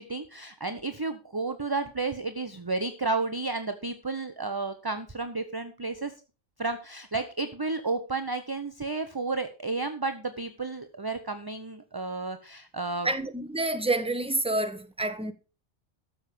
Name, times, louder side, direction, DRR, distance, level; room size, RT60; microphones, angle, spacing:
voice 1, 0.0-6.1 6.6-13.1, right 3 dB, 20° right, 0.8 m, -32 dB
voice 2, 13.0-15.3, right 2 dB, 5° right, 1.1 m, -28 dB
13.0 x 7.3 x 5.0 m
omnidirectional pair, 1.3 m